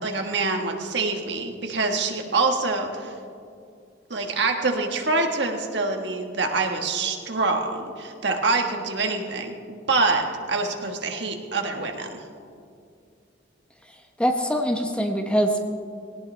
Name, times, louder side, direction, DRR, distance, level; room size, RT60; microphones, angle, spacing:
voice 1, 0.0-3.1 4.1-12.2, right 3 dB, 65° right, 4 dB, 1.5 m, -25 dB
voice 2, 14.2-15.8, equal, 5° left, 4 dB, 0.9 m, -23 dB
19.5 x 17.5 x 3.4 m, 2.4 s
head